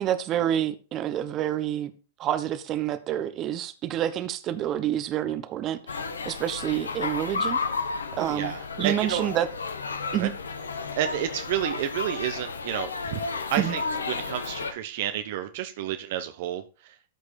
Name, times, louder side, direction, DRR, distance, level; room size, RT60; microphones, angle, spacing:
voice 1, 0.0-1.9 2.2-6.0 6.2-7.6 8.1-9.5 10.1-10.3 13.6-13.8, right 11 dB, 30° right, 11 dB, 1.1 m, -28 dB
sound 1, 5.9-14.7, left 4 dB, 80° left, 1.1 m, -32 dB
voice 2, 8.2-9.3 10.1-10.3 11.0-13.8 14.1-16.9, right 11 dB, 55° right, 8 dB, 0.9 m, -30 dB
13.0 x 4.7 x 4.3 m, 0.35 s
figure-of-eight pair, 105°, 0 cm